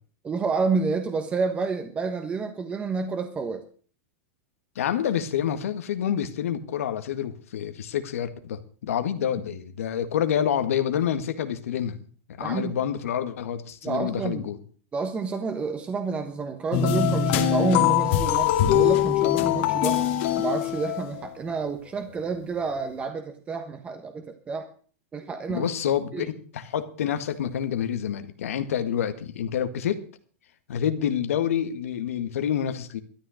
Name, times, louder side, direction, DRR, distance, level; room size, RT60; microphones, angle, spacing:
voice 1, 0.2-3.6 12.4-12.7 13.8-14.4 14.9-20.0 20.4-24.7 25.1-25.7 26.1-26.3, right 4 dB, 15° right, 1.2 m, -29 dB
voice 2, 4.8-12.0 12.4-14.6 25.5-30.0 30.7-33.0, left 9 dB, 80° left, 1.8 m, -28 dB
sound 1, 16.7-21.3, left 10 dB, 50° left, 2.2 m, -22 dB
13.0 x 10.5 x 6.5 m
supercardioid pair, 145°, 7 cm